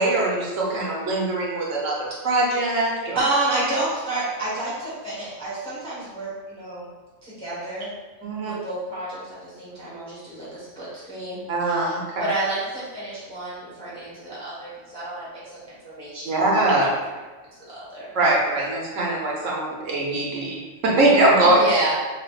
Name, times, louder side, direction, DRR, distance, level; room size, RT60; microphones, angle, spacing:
voice 1, 0.0-3.2 8.2-8.5 11.5-12.2 16.2-16.9 18.1-20.6 20.8-21.6, right 2 dB, 75° right, -4 dB, 1.2 m, -22 dB
voice 2, 3.1-6.9 7.2-7.9 8.4-16.4 16.8-16.9 17.7-18.1 21.4-21.9, right 2 dB, 5° left, -10 dB, 1.2 m, -30 dB
5.5 x 2.5 x 2.4 m, 1.3 s
omnidirectional pair, 1.3 m